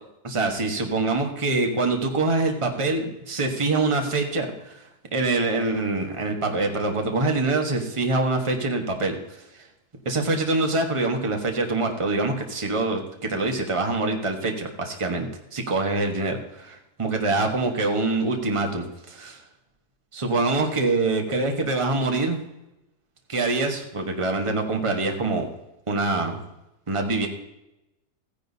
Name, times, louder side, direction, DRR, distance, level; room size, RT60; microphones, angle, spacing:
voice 1, 0.2-4.7 5.1-9.2 10.0-19.4 20.1-22.4 23.3-25.5 25.9-26.4 26.9-27.3, right 3 dB, 20° right, 3 dB, 1.2 m, -25 dB
15.5 x 10.0 x 2.7 m, 0.91 s
omnidirectional pair, 1.7 m